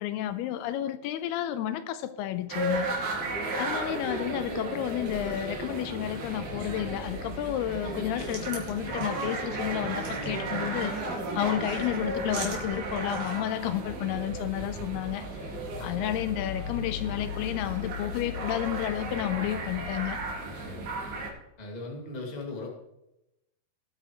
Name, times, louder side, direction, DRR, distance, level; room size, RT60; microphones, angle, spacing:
voice 1, 0.0-3.2 3.6-15.5 15.8-20.2, left 12 dB, 85° left, 11 dB, 2.7 m, -31 dB
sound 1, 2.5-21.3, right 1 dB, 70° right, 4.1 m, -34 dB
sound 2, 7.8-13.5, right 3 dB, 50° right, 3.5 m, -43 dB
voice 2, 15.8-16.3 20.5-20.9 21.6-22.7, left 2 dB, 20° left, -1 dB, 1.1 m, -40 dB
19.0 x 9.0 x 3.1 m, 0.90 s
omnidirectional pair, 4.5 m